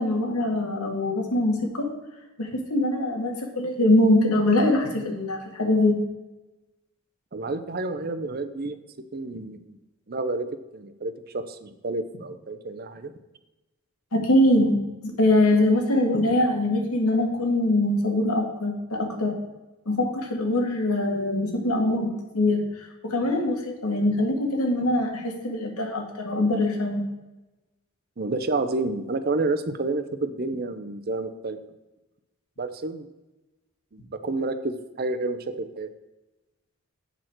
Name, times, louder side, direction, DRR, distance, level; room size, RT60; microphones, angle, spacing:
voice 1, 0.0-1.9 2.4-6.0 14.1-19.3 19.9-22.1 22.3-27.0, left 1 dB, 85° left, 2 dB, 1.8 m, -23 dB
voice 2, 7.3-8.8 9.1-9.7 10.1-10.5 10.7-13.1 28.2-31.6 32.6-33.1 33.9-35.9, right 2 dB, 45° right, 10 dB, 0.6 m, -29 dB
8.0 x 6.4 x 4.5 m, 1.1 s
head